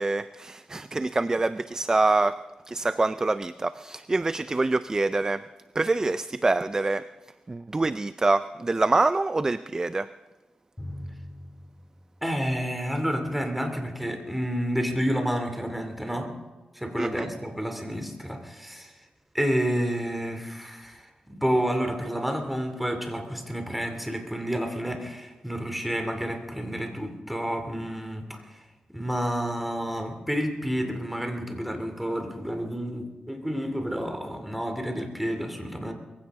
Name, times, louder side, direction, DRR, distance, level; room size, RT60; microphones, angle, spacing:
voice 1, 0.0-2.4 2.7-5.4 5.8-7.1 7.5-10.1 17.0-17.3, right 2 dB, 25° right, 13 dB, 0.4 m, -25 dB
Drum, 10.8-13.2, left 1 dB, 15° left, 2.7 m, -43 dB
voice 2, 12.2-16.3 16.7-18.9 19.3-28.6 28.9-35.9, equal, 5° right, 5 dB, 2.7 m, -30 dB
22.0 x 16.0 x 3.7 m, 1.2 s
wide cardioid pair, 90°, 3 cm